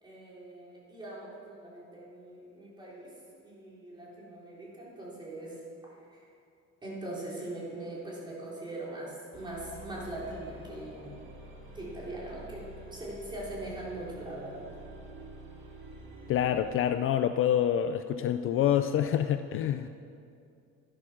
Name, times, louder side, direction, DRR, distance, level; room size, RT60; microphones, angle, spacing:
voice 1, 0.0-3.1 3.4-5.6 6.1-6.3 6.8-11.1 11.7-12.6 12.9-14.6, right 1 dB, 15° right, -5 dB, 3.6 m, -41 dB
sound 1, 9.3-16.8, right 2 dB, 40° right, 2.4 m, -48 dB
voice 2, 16.3-19.9, left 10 dB, 45° left, 10 dB, 0.4 m, -27 dB
12.0 x 11.5 x 6.0 m, 2.5 s
cardioid pair, 155°, 29 cm